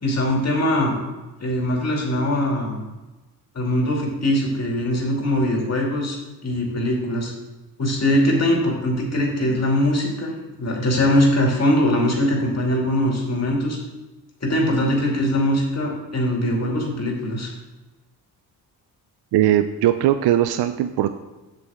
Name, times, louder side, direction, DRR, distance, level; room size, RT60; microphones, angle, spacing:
voice 1, 0.0-1.0 1.4-2.8 3.5-6.2 6.4-7.3 7.8-10.3 10.6-13.8 14.4-17.5, left 1 dB, 40° left, -1 dB, 2.7 m, -21 dB
voice 2, 19.3-21.2, right 12 dB, 70° right, 10 dB, 0.5 m, -19 dB
7.7 x 7.5 x 3.7 m, 1.1 s
cardioid pair, 70°, 41 cm